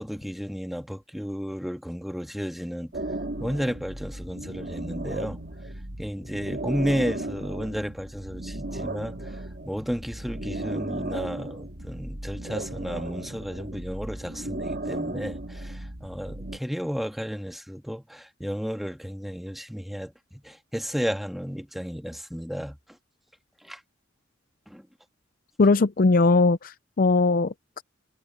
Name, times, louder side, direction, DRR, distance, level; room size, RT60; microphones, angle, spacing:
voice 1, 0.0-2.9 3.4-5.4 6.0-9.4 9.6-22.8 23.6-23.8 24.7-24.9, equal, ahead, 1.6 m, -33 dB
sound 1, 2.9-16.6, right 1 dB, 55° right, 3.0 m, -35 dB
voice 2, 25.6-27.8, left 3 dB, 45° left, 0.5 m, -20 dB
head